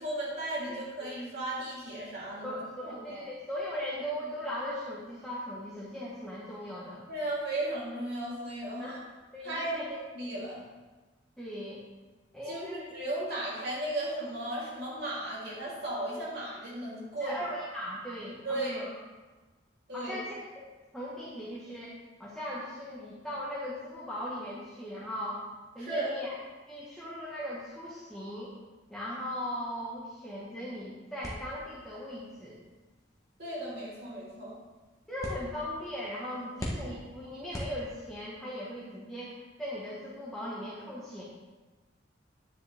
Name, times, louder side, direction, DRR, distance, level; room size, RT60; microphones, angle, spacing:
voice 1, 0.0-2.6 2.8-3.2 7.1-9.0 9.4-10.6 12.5-17.3 18.4-18.9 19.9-20.1 25.8-26.1 33.4-34.6, right 1 dB, 55° right, -7 dB, 3.4 m, -35 dB
voice 2, 0.7-1.1 2.4-7.1 8.8-9.0 9.3-9.9 11.4-11.8 12.3-12.9 17.2-18.9 19.9-20.6 20.9-25.4 25.7-26.4 26.7-28.6 28.9-32.6 35.1-41.2, equal, ahead, -9 dB, 1.5 m, -38 dB
sound 1, 31.2-38.3, equal, 20° left, 1.4 m, -44 dB
9.9 x 9.6 x 3.6 m, 1.2 s
head